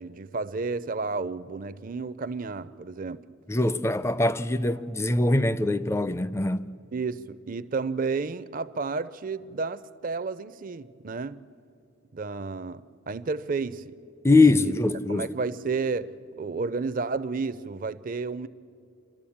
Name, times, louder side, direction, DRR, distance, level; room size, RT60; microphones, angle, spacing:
voice 1, 0.0-3.2 6.9-11.4 12.1-13.9 14.3-14.7 15.1-18.5, right 4 dB, 40° right, 0.5 m, -32 dB
voice 2, 3.5-6.7 14.2-15.3, left 2 dB, 15° left, 0.4 m, -22 dB
28.0 x 12.0 x 8.6 m
head